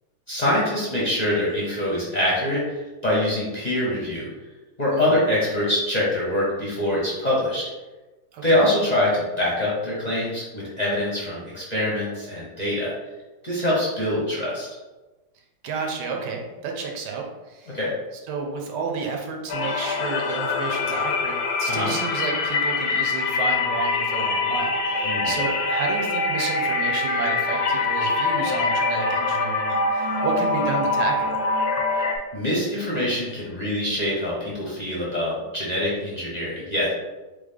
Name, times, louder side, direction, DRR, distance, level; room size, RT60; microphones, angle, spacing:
voice 1, 0.3-4.3 4.8-7.7 8.4-12.9 13.4-14.7 17.7-17.9 21.7-21.9 25.0-25.4 32.3-36.9, left 1 dB, 30° left, -6 dB, 0.9 m, -24 dB
voice 2, 15.6-17.8 18.3-31.4, right 4 dB, 80° right, 1 dB, 1.3 m, -31 dB
sound 1, 19.5-32.2, left 3 dB, 70° left, 1.1 m, -24 dB
3.9 x 3.4 x 3.6 m, 1.1 s
omnidirectional pair, 1.8 m